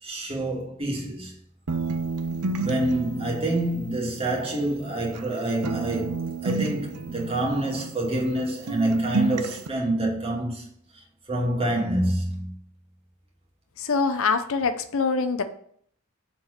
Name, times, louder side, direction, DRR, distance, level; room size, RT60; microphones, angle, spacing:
voice 1, 0.0-1.3 2.6-10.7 10.9-12.5, right 1 dB, 25° right, 2.5 m, -27 dB
sound 1, 1.7-5.3 5.6-8.4 8.7-9.7, right 4 dB, 80° right, 0.7 m, -31 dB
voice 2, 13.8-15.4, left 4 dB, 65° left, 0.7 m, -24 dB
7.1 x 4.6 x 6.6 m
head